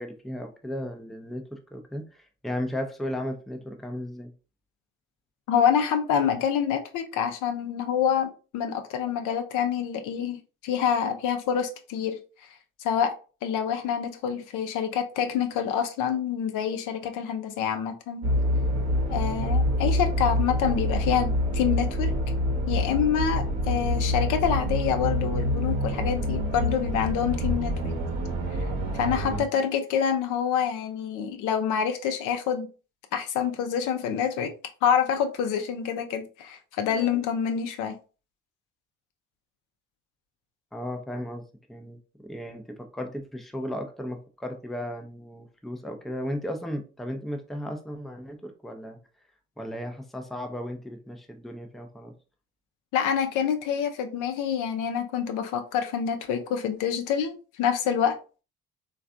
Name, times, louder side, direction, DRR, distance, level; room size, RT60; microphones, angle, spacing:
voice 1, 0.0-4.3 40.7-41.4 41.7-49.0 49.6-52.1, left 1 dB, ahead, 4 dB, 0.5 m, -35 dB
voice 2, 5.5-12.2 12.8-13.1 13.4-18.3 19.1-22.1 22.7-27.9 28.5-28.6 28.9-32.7 33.1-34.5 34.8-37.9 52.9-58.2, left 8 dB, 65° left, 6 dB, 0.6 m, -27 dB
sound 1, 18.2-29.4, equal, 55° right, 0.9 m, -26 dB
3.2 x 2.5 x 2.4 m, 0.34 s
hypercardioid pair, 55°, 32 cm